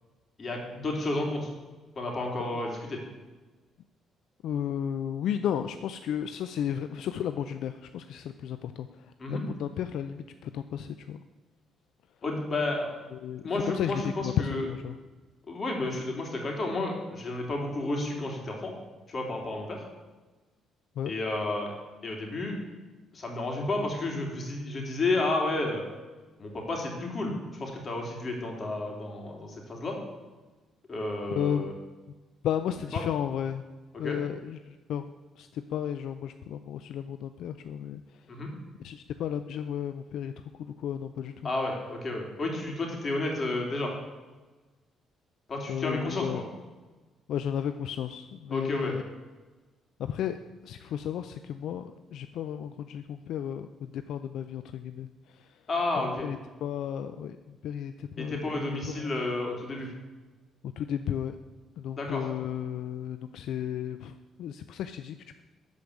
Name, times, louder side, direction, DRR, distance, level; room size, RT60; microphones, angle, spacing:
voice 1, 0.4-1.5 1.9-3.0 9.2-9.4 12.2-12.9 13.4-14.6 15.5-18.7 19.1-19.8 21.0-21.7 22.0-22.6 23.1-25.8 26.4-30.0 30.9-31.7 32.9-33.0 33.9-34.2 38.3-38.5 41.4-43.9 45.5-46.4 48.5-48.9 55.7-56.3 58.2-59.9 61.9-62.3, left 2 dB, 40° left, 1 dB, 3.4 m, -31 dB
voice 2, 4.4-11.2 13.1-15.0 21.0-21.1 31.3-31.7 32.4-33.6 34.0-35.1 35.4-38.3 38.8-41.5 45.7-46.4 47.3-49.0 50.0-55.6 56.0-59.1 60.8-61.4 61.8-65.4, left 9 dB, 75° left, 10 dB, 0.5 m, -34 dB
13.0 x 5.1 x 8.2 m, 1.2 s
cardioid pair, 90°, 0 cm